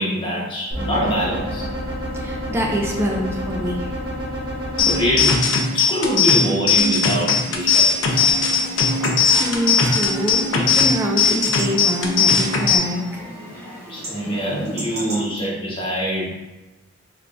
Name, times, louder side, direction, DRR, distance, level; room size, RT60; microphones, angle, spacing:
voice 1, 0.0-1.7 4.9-5.4 5.7-8.4 9.9-10.0 13.9-16.3, equal, 25° left, -7 dB, 1.0 m, -24 dB
sound 1, 0.7-5.1, equal, 80° right, 1.2 m, -29 dB
voice 2, 2.1-3.9 9.0-13.2, equal, 10° right, 0 dB, 0.4 m, -25 dB
sound 2, 4.8-12.8, left 5 dB, 70° left, 0.5 m, -19 dB
Chatter / Livestock farm animals working animals / Chirp tweet, 8.0-15.2, equal, 50° right, 1.0 m, -35 dB
3.4 x 3.3 x 2.5 m, 1.1 s
head